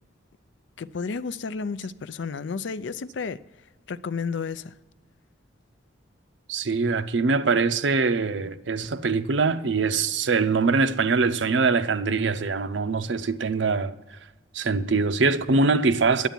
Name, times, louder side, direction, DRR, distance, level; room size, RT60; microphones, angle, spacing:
voice 1, 0.8-3.4 3.9-4.7, left 5 dB, 70° left, 0.4 m, -32 dB
voice 2, 6.5-13.9 14.5-16.3, right 4 dB, 70° right, 0.6 m, -23 dB
10.5 x 8.1 x 9.0 m
head